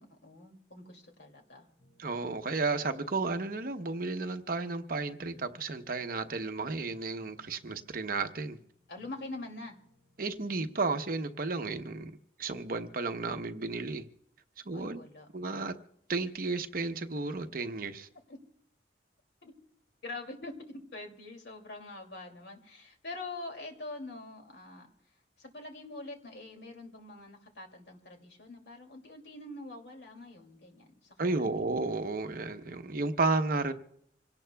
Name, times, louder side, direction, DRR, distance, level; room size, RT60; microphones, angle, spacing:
voice 1, 0.0-1.7 8.9-9.8 14.7-15.3 18.3-18.4 19.4-19.5 20.0-24.9 25.4-31.4, left 2 dB, 70° left, 2.6 m, -44 dB
voice 2, 2.0-8.6 10.2-12.1 12.4-14.1 14.7-15.0 15.3-15.8 16.1-18.1 31.2-33.7, right 3 dB, 55° right, 0.9 m, -33 dB
sound 1, 4.8-11.6, left 1 dB, 20° left, 7.2 m, -65 dB
26.5 x 17.5 x 2.3 m
head